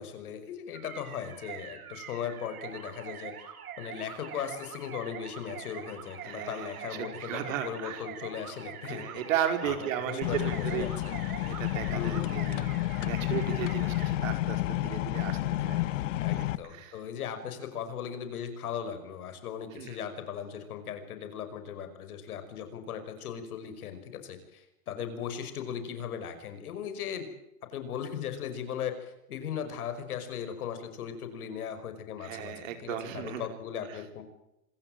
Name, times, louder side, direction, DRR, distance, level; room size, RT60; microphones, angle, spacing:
voice 1, 0.0-3.3 3.8-9.2 9.6-11.1 11.9-12.4 16.2-27.3 27.7-34.2, left 8 dB, 80° left, 9 dB, 5.8 m, -38 dB
sound 1, 0.7-14.1, right 9 dB, 75° right, 5.5 m, -44 dB
voice 2, 6.2-6.9 7.2-8.0 8.8-10.9 11.5-12.7 13.0-15.8 16.3-17.0 19.8-19.9 32.2-33.4, right 10 dB, 60° right, 7 dB, 4.6 m, -35 dB
sound 2, 10.2-16.6, left 15 dB, 55° left, 1.2 m, -30 dB
26.5 x 16.0 x 9.1 m, 0.86 s
supercardioid pair, 170°, 43 cm